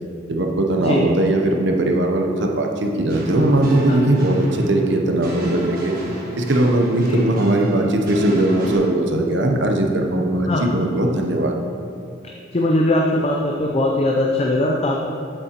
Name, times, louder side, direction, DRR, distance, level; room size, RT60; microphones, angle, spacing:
voice 1, 0.3-6.0 6.4-11.5, right 1 dB, 60° right, 2 dB, 0.7 m, -19 dB
sound 1, 3.1-8.8, right 1 dB, 45° right, 1.4 m, -34 dB
voice 2, 12.5-15.0, left 1 dB, 30° left, -1 dB, 0.5 m, -20 dB
8.7 x 6.8 x 2.9 m, 2.6 s
head